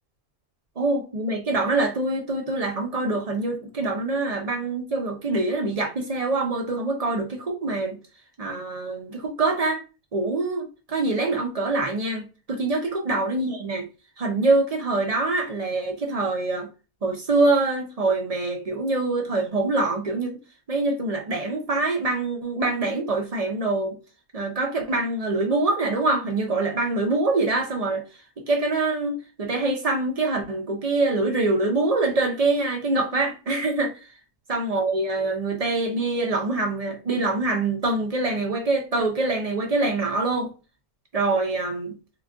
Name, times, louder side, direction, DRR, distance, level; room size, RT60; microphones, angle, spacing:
voice 1, 0.8-8.0 8.4-9.8 10.1-13.9 14.2-16.7 17.0-20.3 20.7-24.0 24.3-28.0 28.4-34.0 34.5-40.5 41.1-41.9, right 2 dB, 50° right, 0.4 m, -25 dB
2.9 x 2.4 x 3.6 m
omnidirectional pair, 1.5 m